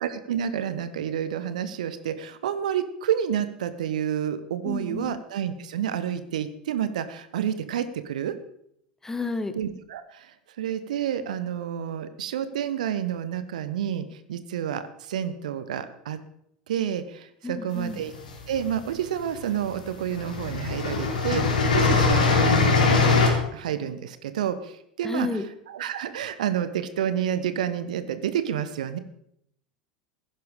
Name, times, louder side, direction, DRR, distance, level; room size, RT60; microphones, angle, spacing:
voice 1, 0.0-8.4 9.6-16.2 16.7-18.1 18.5-23.2 23.5-29.0, right 9 dB, 65° right, 12 dB, 1.0 m, -29 dB
voice 2, 4.6-5.1 9.0-9.5 17.4-18.0 25.0-25.5, left 3 dB, 10° left, 10 dB, 1.4 m, -30 dB
sound 1, 17.9-18.8 19.7-19.8 20.1-23.3, left 4 dB, 70° left, 3.3 m, -21 dB
15.5 x 10.5 x 4.9 m, 0.74 s
figure-of-eight pair, 80°, 4 cm